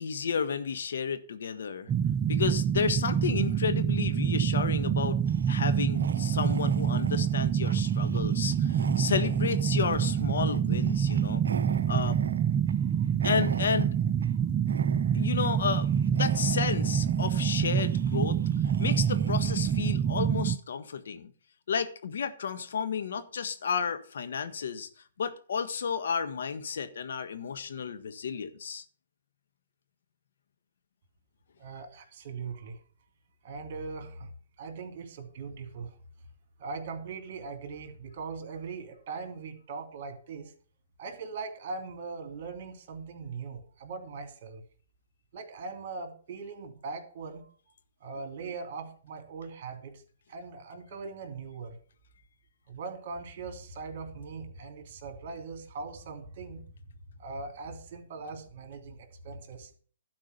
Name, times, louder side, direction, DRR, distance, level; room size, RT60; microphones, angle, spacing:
voice 1, 0.0-1.9 2.3-11.4 11.9-12.2 13.2-13.9 15.1-18.4 18.6-21.3 21.7-24.9 25.2-28.8, left 6 dB, 65° left, 1.5 m, -32 dB
sound 1, 1.9-20.6, right 8 dB, 20° right, 0.4 m, -27 dB
sound 2, 5.3-14.4 14.7-15.5 15.8-20.0, right 6 dB, 75° right, 0.8 m, -43 dB
voice 2, 31.6-32.8 33.4-34.3 34.6-36.0 36.6-40.5 41.0-44.6 45.3-47.4 48.0-50.0 50.3-51.8 52.7-56.7 57.2-59.7, right 4 dB, 45° right, 2.9 m, -40 dB
12.0 x 4.8 x 8.1 m
hypercardioid pair, 135°, 0 cm